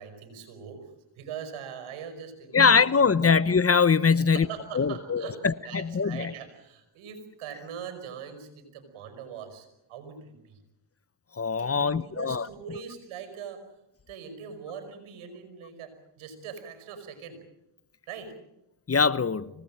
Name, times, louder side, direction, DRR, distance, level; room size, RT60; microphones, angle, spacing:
voice 1, 0.0-3.3 4.2-10.6 11.6-13.7 14.1-17.4 18.1-18.4, right 7 dB, 90° right, 5.5 m, -42 dB
voice 2, 2.5-4.5 4.7-6.3 11.4-12.5 18.9-19.5, left 5 dB, 30° left, 1.0 m, -22 dB
25.5 x 18.5 x 9.0 m
supercardioid pair, 65°, 48 cm